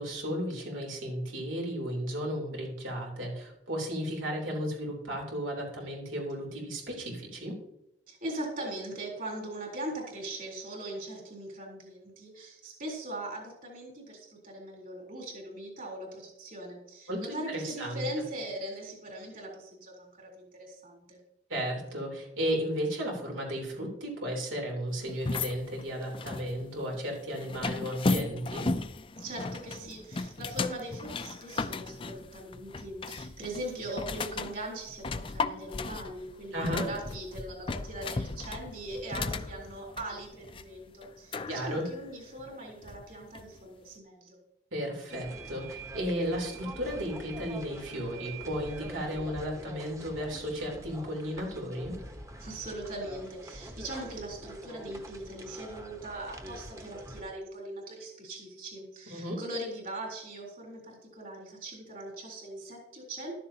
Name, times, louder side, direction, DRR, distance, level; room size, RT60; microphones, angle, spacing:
voice 1, 0.0-7.6 17.1-18.0 21.5-28.7 36.5-36.9 41.5-41.8 44.7-51.9 59.1-59.4, equal, 90° right, -1 dB, 3.5 m, -34 dB
voice 2, 8.1-21.2 29.2-44.4 52.4-63.3, right 1 dB, 45° right, -1 dB, 3.7 m, -40 dB
sound 1, 25.1-43.6, left 3 dB, 25° left, 0.4 m, -36 dB
sound 2, 45.1-57.2, right 1 dB, 15° right, 1.0 m, -45 dB
14.0 x 12.5 x 2.9 m, 0.84 s
head